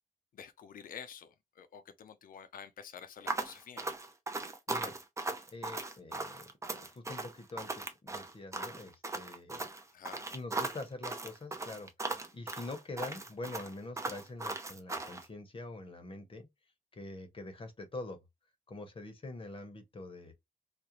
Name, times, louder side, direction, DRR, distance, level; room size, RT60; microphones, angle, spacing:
voice 1, 0.3-3.9 9.9-10.3, left 7 dB, 80° left, 0.4 m, -49 dB
sound 1, 3.3-15.2, right 2 dB, 20° right, 0.5 m, -38 dB
voice 2, 5.5-9.7 10.3-16.5 16.9-18.2 18.7-20.3, left 2 dB, 40° left, 0.7 m, -45 dB
2.4 x 2.1 x 2.8 m
cardioid pair, 85°, 14 cm